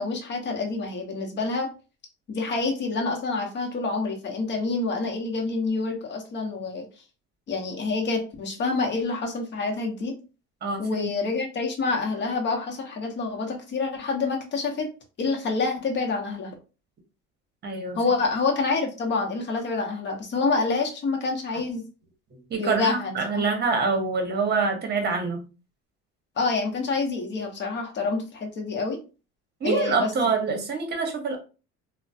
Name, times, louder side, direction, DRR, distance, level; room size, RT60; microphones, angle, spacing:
voice 1, 0.0-1.7 2.3-6.8 7.5-10.1 10.8-14.9 15.2-16.5 17.9-21.8 22.6-23.4 26.4-29.0 29.6-30.1, left 3 dB, 35° left, 0.8 m, -27 dB
voice 2, 10.6-11.1 17.6-18.0 22.5-25.5 29.6-31.4, right 4 dB, 35° right, 0.9 m, -25 dB
3.0 x 2.1 x 2.7 m
cardioid pair, 125°, 31 cm